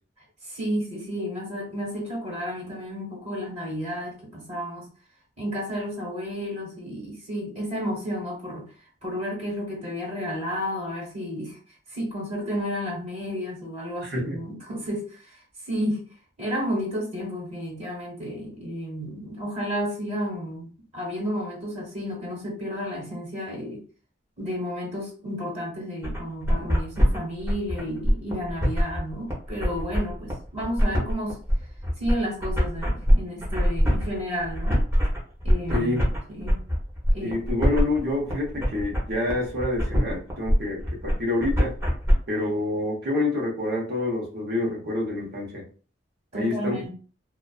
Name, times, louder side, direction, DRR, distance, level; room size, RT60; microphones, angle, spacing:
voice 1, 0.5-4.9 5.4-8.7 9.0-11.6 11.9-15.4 15.7-16.0 16.4-23.8 24.4-31.4 32.0-34.8 35.4-36.6 37.1-37.4 46.3-46.9, equal, 40° right, -3 dB, 1.2 m, -32 dB
voice 2, 14.0-14.4 35.7-36.0 37.2-41.7 42.3-45.6 46.3-46.8, left 2 dB, 55° right, -2 dB, 0.9 m, -27 dB
sound 1, 26.0-42.1, equal, 15° right, 0.7 m, -23 dB
2.4 x 2.3 x 2.3 m, 0.39 s
head